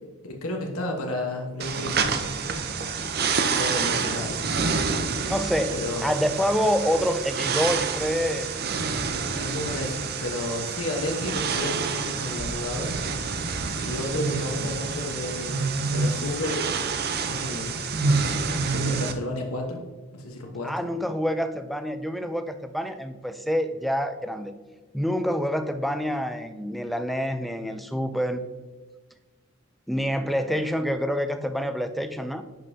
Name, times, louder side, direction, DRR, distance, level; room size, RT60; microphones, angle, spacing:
voice 1, 0.0-2.4 3.5-4.5 5.8-6.1 9.3-12.9 13.8-16.6 17.3-17.9 18.7-19.8 20.1-20.7, left 1 dB, 90° left, 1 dB, 1.2 m, -32 dB
sound 1, 1.6-19.1, right 4 dB, 45° right, 0.6 m, -28 dB
voice 2, 5.3-8.7 20.6-24.5 24.9-28.4 29.9-32.4, equal, ahead, 9 dB, 0.3 m, -27 dB
10.5 x 5.3 x 2.7 m, 1.4 s
head